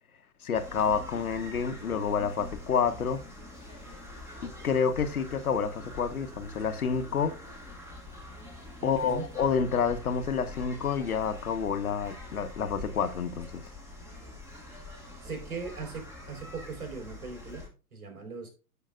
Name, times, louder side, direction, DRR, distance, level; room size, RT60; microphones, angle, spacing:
voice 1, 0.4-3.2 4.4-7.3 8.8-13.6, left 6 dB, 70° left, 1.3 m, -29 dB
sound 1, 0.5-17.7, left 2 dB, 5° right, 1.8 m, -45 dB
voice 2, 8.8-9.3 15.2-17.6 17.9-18.5, right 5 dB, 70° right, 5.0 m, -39 dB
15.5 x 5.2 x 2.5 m
figure-of-eight pair, 125°, 45 cm